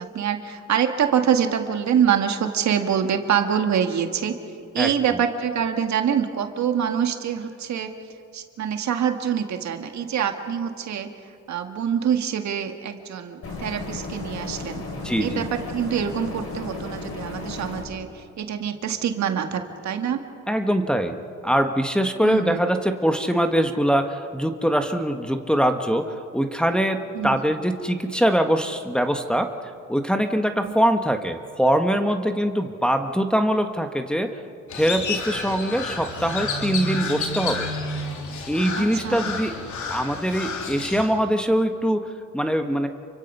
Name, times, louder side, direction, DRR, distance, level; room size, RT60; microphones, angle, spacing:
voice 1, 0.0-4.4 4.7-7.9 8.3-11.1 11.5-14.8 15.2-20.2 22.2-22.6 27.2-27.4 30.6-30.7 38.7-39.3, right 8 dB, 65° right, 5 dB, 1.9 m, -25 dB
voice 2, 4.8-5.2 14.9-15.4 20.5-21.2 21.4-29.5 29.9-34.4 34.7-37.7 38.5-39.5 39.9-42.9, equal, 5° left, 4 dB, 1.5 m, -23 dB
sound 1, 13.4-17.8, left 3 dB, 50° left, 6.7 m, -34 dB
Crow, 34.7-41.1, left 3 dB, 75° left, 3.2 m, -30 dB
29.0 x 24.0 x 5.6 m, 2.4 s
cardioid pair, 90°, 30 cm